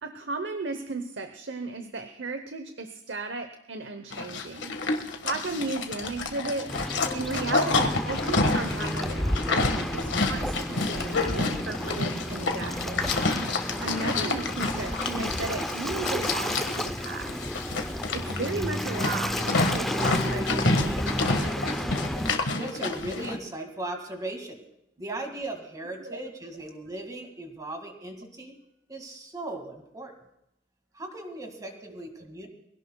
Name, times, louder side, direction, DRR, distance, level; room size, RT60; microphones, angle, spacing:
voice 1, 0.0-4.8 5.2-6.8 7.1-13.0 13.8-17.5 18.1-21.5 26.0-26.2, right 3 dB, 70° right, 8 dB, 0.9 m, -35 dB
Livestock farm animals working animals, 4.1-23.4, left 3 dB, 75° left, 1.6 m, -29 dB
Waves surf, 6.7-22.3, equal, ahead, 0.5 m, -32 dB
voice 2, 7.0-7.4 22.6-24.6 25.0-28.6 28.9-30.1 30.9-32.5, right 1 dB, 20° right, 3 dB, 2.0 m, -37 dB
24.5 x 17.0 x 2.3 m, 0.83 s
head